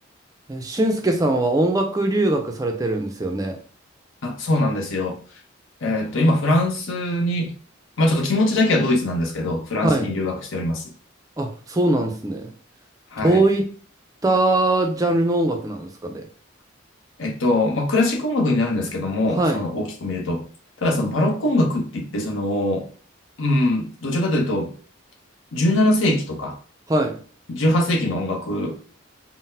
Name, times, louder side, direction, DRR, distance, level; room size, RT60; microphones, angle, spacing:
voice 1, 0.5-3.6 9.8-10.1 11.4-12.5 13.2-13.7 14.2-16.3 19.4-19.6 26.9-27.2, right 2 dB, 15° right, 0.4 m, -21 dB
voice 2, 4.2-5.2 5.8-7.5 8.0-10.9 13.1-13.4 17.2-20.4 20.8-22.8 23.4-24.7 25.5-26.6 27.5-28.7, left 1 dB, 70° left, 0.7 m, -22 dB
3.7 x 2.0 x 2.7 m
head